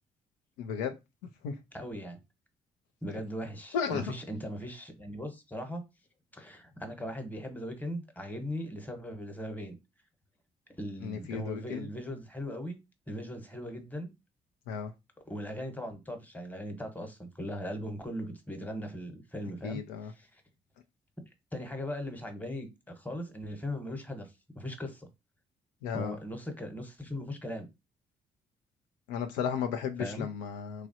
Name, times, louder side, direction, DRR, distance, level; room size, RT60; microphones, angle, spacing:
voice 1, 0.6-0.9 1.4-1.5 3.7-4.0 11.0-11.9 14.7-14.9 19.6-20.1 25.8-26.2 29.1-30.9, left 7 dB, 75° left, 0.5 m, -34 dB
voice 2, 1.7-2.2 3.0-5.8 6.3-9.7 10.8-12.8 13.1-14.1 15.3-19.8 20.1-20.3 21.5-24.3 24.5-25.1 25.9-27.7 30.0-30.3, equal, 10° left, 1.0 m, -39 dB
3.1 x 2.3 x 2.8 m
hypercardioid pair, 45°, 19 cm